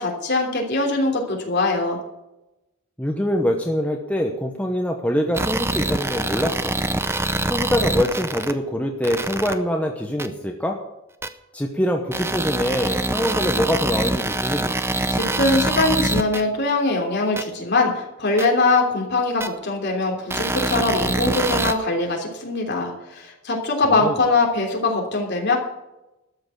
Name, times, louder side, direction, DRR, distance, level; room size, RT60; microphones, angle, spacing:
voice 1, 0.0-2.0 15.1-25.6, left 3 dB, 50° left, 1 dB, 3.1 m, -22 dB
voice 2, 3.0-6.7 7.5-10.8 11.5-14.8 23.9-24.2, equal, 5° left, 2 dB, 1.0 m, -24 dB
sound 1, 5.3-8.5 9.0-9.5 10.2-10.3 11.2-11.3 12.1-16.4 17.4-17.5 18.4-18.5 19.4-19.5 20.3-21.7, right 2 dB, 10° right, 0.6 m, -24 dB
13.0 x 7.0 x 8.3 m, 0.96 s
head